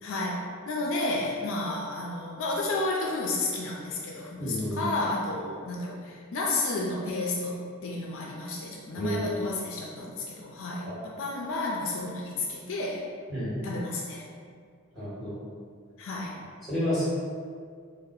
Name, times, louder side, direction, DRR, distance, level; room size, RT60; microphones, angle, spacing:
voice 1, 0.0-13.0 13.6-14.3 16.0-16.4, left 2 dB, 65° left, -2 dB, 0.4 m, -32 dB
voice 2, 4.4-4.9 8.9-9.2 13.3-13.6 14.9-15.4 16.6-17.1, equal, ahead, -11 dB, 1.3 m, -30 dB
2.7 x 2.0 x 3.8 m, 2.1 s
head